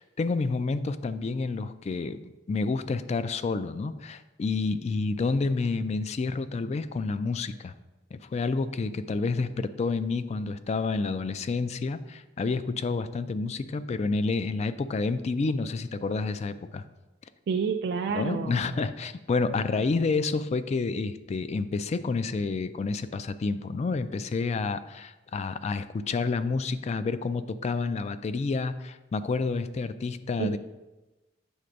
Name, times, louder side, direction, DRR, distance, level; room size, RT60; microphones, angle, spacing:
voice 1, 0.0-7.7 8.1-16.8 18.1-30.6, left 4 dB, 35° left, 13 dB, 0.3 m, -29 dB
voice 2, 17.5-18.7 30.4-30.6, right 6 dB, 60° right, 4 dB, 0.3 m, -29 dB
8.0 x 3.3 x 5.1 m, 1.1 s
head